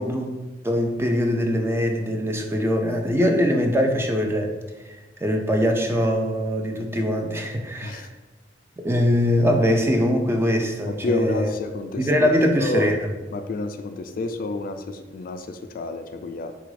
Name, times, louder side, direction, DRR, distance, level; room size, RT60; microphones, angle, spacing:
voice 1, 0.0-4.5 5.2-8.1 8.8-11.5 12.0-13.0, equal, 15° right, 3 dB, 0.4 m, -22 dB
voice 2, 10.9-12.3 12.6-12.9 13.3-16.5, left 2 dB, 50° left, 8 dB, 0.3 m, -29 dB
3.9 x 2.5 x 4.7 m, 1.2 s
head